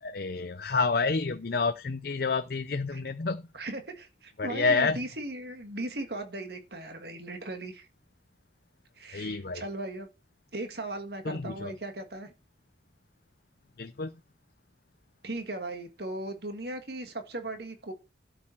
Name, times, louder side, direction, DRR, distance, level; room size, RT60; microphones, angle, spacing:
voice 1, 0.0-3.5 4.4-5.0 9.1-9.6 11.2-11.7 13.8-14.2, left 4 dB, 55° left, 0.6 m, -29 dB
voice 2, 3.5-7.9 9.0-10.1 10.5-12.3 15.2-17.9, right 2 dB, 55° right, 1.8 m, -37 dB
12.0 x 6.5 x 4.5 m
head